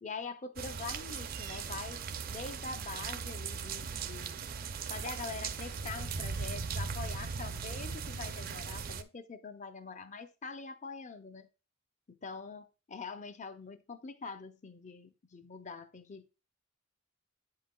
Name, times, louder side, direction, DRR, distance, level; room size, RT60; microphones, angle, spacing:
voice 1, 0.0-2.0 2.3-4.4 4.9-11.5 12.1-16.3, left 4 dB, 35° left, 0.6 m, -44 dB
sound 1, 0.6-9.0, right 5 dB, 45° right, 0.4 m, -38 dB
8.0 x 5.6 x 2.3 m
head